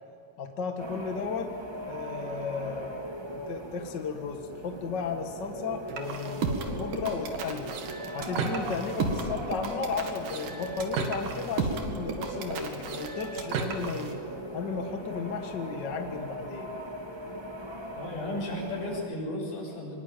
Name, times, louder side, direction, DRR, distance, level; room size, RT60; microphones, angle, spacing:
voice 1, 0.4-1.5 1.9-7.7 8.1-14.2 14.5-16.7, left 5 dB, 45° left, 5 dB, 1.8 m, -34 dB
sound 1, 0.8-19.1, right 1 dB, 45° right, 0.3 m, -39 dB
sound 2, 5.9-14.1, right 4 dB, 85° right, 3.7 m, -33 dB
voice 2, 17.9-20.0, left 1 dB, 75° left, -1 dB, 8.0 m, -34 dB
24.5 x 21.5 x 9.1 m, 2.9 s
omnidirectional pair, 3.7 m